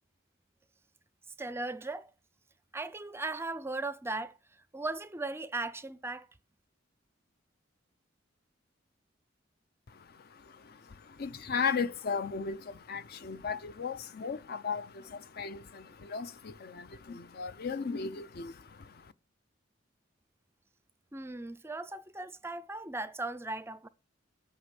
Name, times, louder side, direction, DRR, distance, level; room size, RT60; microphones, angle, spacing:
voice 1, 1.4-2.1 2.7-4.3 4.7-6.3 21.1-23.9, right 2 dB, 15° right, 0.4 m, -37 dB
voice 2, 9.9-19.1, left 5 dB, 55° left, 0.5 m, -36 dB
8.5 x 5.9 x 8.1 m
head